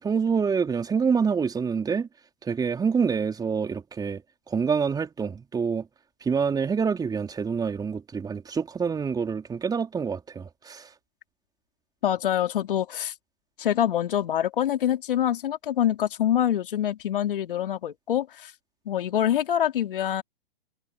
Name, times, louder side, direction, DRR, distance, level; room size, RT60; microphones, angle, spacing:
voice 1, 0.0-2.1 2.4-4.2 4.5-5.9 6.2-10.9, right 6 dB, 15° right, 4.1 m, -26 dB
voice 2, 12.0-13.1 13.6-18.5 18.8-20.2, left 10 dB, 60° left, 3.4 m, -25 dB
figure-of-eight pair, 115°, 30 cm